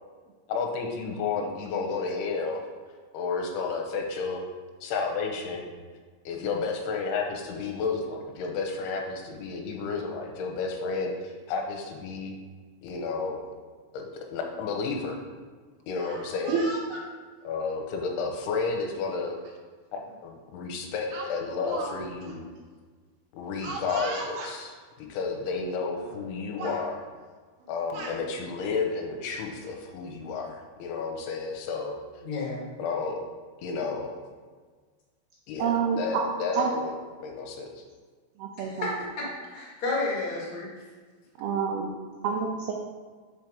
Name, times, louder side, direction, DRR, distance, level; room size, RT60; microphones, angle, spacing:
voice 1, 0.5-2.7 3.1-4.4 4.8-5.7 6.3-12.3 12.8-13.4 13.9-14.0 14.3-15.2 15.9-16.7 17.4-19.4 19.9-22.5 23.3-27.0 27.7-32.0 32.8-33.2 33.6-34.1 35.5-36.9 37.2-37.8, left 4 dB, 75° left, 1 dB, 2.5 m, -31 dB
Speech, 15.9-17.1 18.0-18.2 19.4-19.5 19.9-20.1 21.1-22.0 22.2-22.3 23.6-24.5 25.5-25.6 25.9-26.3 26.6-26.8 27.6-28.2, right 2 dB, 70° right, 1.9 m, -38 dB
voice 2, 32.2-32.6 38.6-38.9 39.2-40.7, left 3 dB, 55° left, -5 dB, 1.4 m, -31 dB
voice 3, 35.6-36.2 36.5-36.7 38.4-38.9 41.4-41.9 42.2-42.7, right 7 dB, 85° right, 0 dB, 2.2 m, -28 dB
6.0 x 4.5 x 5.1 m, 1.5 s
omnidirectional pair, 5.2 m